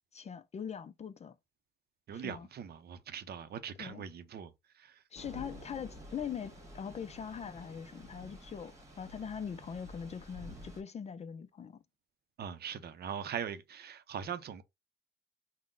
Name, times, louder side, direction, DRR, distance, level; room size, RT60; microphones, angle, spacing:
voice 1, 0.1-1.3 2.1-2.5 3.8-4.0 5.1-11.8, left 7 dB, 35° left, 0.4 m, -42 dB
voice 2, 2.1-5.0 12.4-14.6, right 8 dB, 55° right, 0.6 m, -41 dB
Thunder / Rain, 5.1-10.8, equal, 15° right, 1.6 m, -51 dB
3.7 x 2.1 x 3.6 m
cardioid pair, 90°, 20 cm